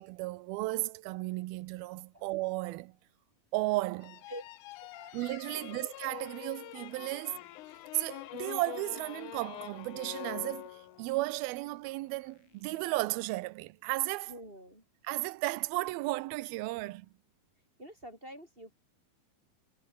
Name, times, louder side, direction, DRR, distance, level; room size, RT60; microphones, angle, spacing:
voice 1, 0.0-2.9 3.5-4.2 5.1-7.4 7.9-14.3 15.0-17.1, right 20 dB, 85° right, 2.5 m, -34 dB
sound 1, 4.0-11.2, left 17 dB, 85° left, 1.8 m, -45 dB
sound 2, 4.7-13.0, left 4 dB, 65° left, 8.0 m, -62 dB
voice 2, 4.9-5.2 5.6-5.8 7.2-7.3 14.3-14.8 17.8-18.7, equal, 15° right, 6.0 m, -47 dB
omnidirectional pair, 4.4 m